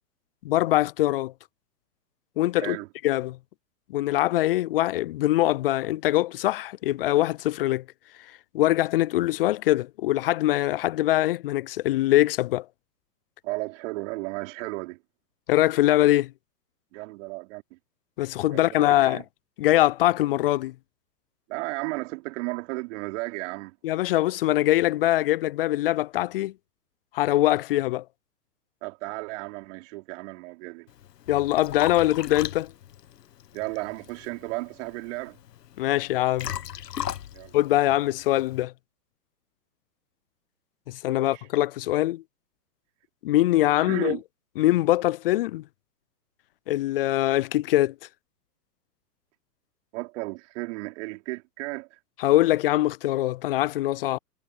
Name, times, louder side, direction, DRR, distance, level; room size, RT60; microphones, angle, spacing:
voice 1, 0.4-1.3 2.4-2.8 3.0-3.4 3.9-7.8 8.5-12.6 15.5-16.3 18.2-19.2 19.6-20.7 23.8-26.5 27.1-28.0 31.3-32.7 35.8-36.5 37.5-38.7 40.9-42.2 43.2-44.2 44.6-45.6 46.7-47.9 52.2-54.2, left 15 dB, 35° left, 0.5 m, -23 dB
voice 2, 2.6-2.9 13.4-15.0 16.9-17.8 18.5-19.2 21.5-23.8 28.8-30.9 33.5-35.4 37.3-37.5 41.1-41.5 43.8-44.2 49.9-52.0, right 23 dB, 45° right, 4.1 m, -34 dB
Liquid, 30.9-38.6, left 10 dB, 75° left, 1.6 m, -38 dB
hypercardioid pair, 125°, 49 cm